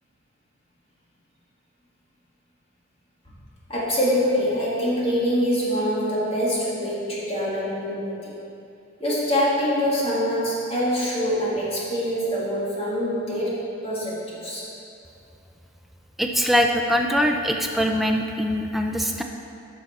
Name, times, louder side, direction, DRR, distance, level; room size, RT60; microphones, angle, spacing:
voice 1, 3.7-8.3 9.0-13.6 13.8-14.7, equal, 25° left, -7 dB, 1.8 m, -24 dB
voice 2, 16.2-19.2, equal, ahead, 2 dB, 0.4 m, -22 dB
10.0 x 5.7 x 4.1 m, 2.7 s
head